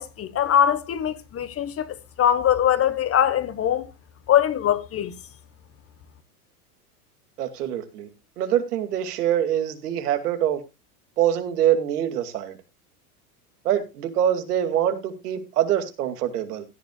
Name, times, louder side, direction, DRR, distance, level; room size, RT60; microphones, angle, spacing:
voice 1, 0.0-3.9 4.3-5.1, left 10 dB, 30° left, 1.3 m, -22 dB
voice 2, 7.4-8.1 8.4-10.6 11.2-12.6 13.6-16.6, right 10 dB, 80° right, 2.4 m, -24 dB
16.5 x 11.0 x 2.3 m
hypercardioid pair, 100°, 46 cm